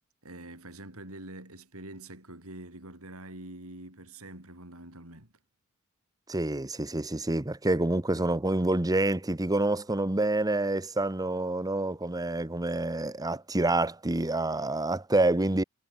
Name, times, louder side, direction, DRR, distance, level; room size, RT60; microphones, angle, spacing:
voice 1, 0.2-5.3, right 1 dB, 70° right, 6.5 m, -45 dB
voice 2, 6.3-15.6, right 2 dB, 15° right, 1.0 m, -27 dB
head